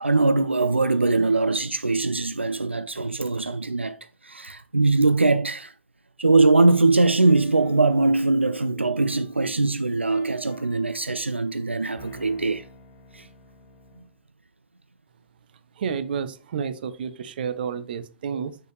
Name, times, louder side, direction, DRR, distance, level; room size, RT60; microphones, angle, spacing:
voice 1, 0.0-4.0 4.2-5.7 6.2-12.6 13.1-13.3 18.3-18.4, right 3 dB, 90° right, 0.3 m, -21 dB
sound 1, 7.2-14.2, left 1 dB, 35° left, 1.6 m, -50 dB
voice 2, 15.8-18.6, right 7 dB, 55° right, 0.7 m, -30 dB
6.7 x 6.5 x 3.2 m
figure-of-eight pair, 110°, 6 cm